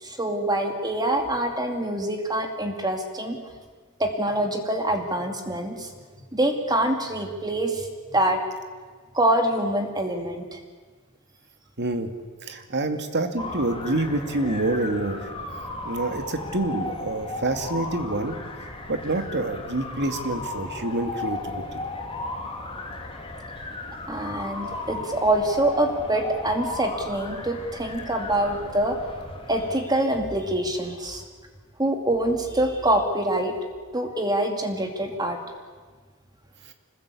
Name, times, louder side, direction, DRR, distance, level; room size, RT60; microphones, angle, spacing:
voice 1, 0.0-3.4 4.0-5.9 6.3-8.4 9.1-10.6 24.1-29.0 29.5-31.2 31.8-33.5 33.9-35.4, right 1 dB, 20° right, 4 dB, 2.4 m, -25 dB
voice 2, 11.8-12.1 12.4-15.2 15.8-18.4 18.9-21.6, right 2 dB, 55° right, 6 dB, 2.3 m, -27 dB
sound 1, 13.4-29.8, left 2 dB, 25° left, 3.5 m, -35 dB
25.5 x 21.0 x 8.5 m, 1.5 s
head